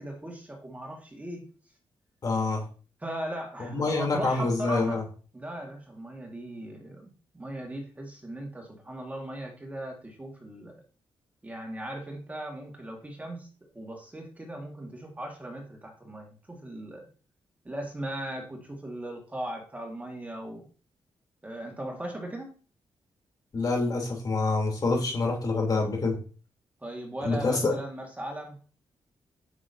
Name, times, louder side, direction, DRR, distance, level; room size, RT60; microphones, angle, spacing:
voice 1, 0.0-1.5 3.0-5.0 5.3-10.7 11.4-13.5 13.7-17.1 17.7-20.7 21.4-22.5 26.8-28.6, right 1 dB, 15° right, 1 dB, 2.0 m, -38 dB
voice 2, 2.2-2.6 3.7-5.0 23.5-26.2 27.2-27.8, left 3 dB, 45° left, -1 dB, 3.5 m, -26 dB
9.9 x 6.2 x 2.8 m, 0.37 s
cardioid pair, 95°, 9 cm